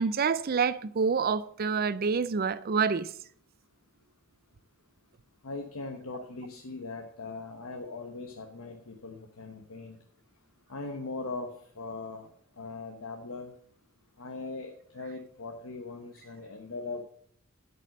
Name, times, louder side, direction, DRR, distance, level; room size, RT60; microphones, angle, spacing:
voice 1, 0.0-3.1, right 5 dB, 45° right, 0.5 m, -27 dB
voice 2, 5.4-10.0 10.7-12.3 12.6-13.5 14.2-17.0, left 3 dB, 75° left, 1.1 m, -40 dB
11.5 x 5.4 x 6.5 m
head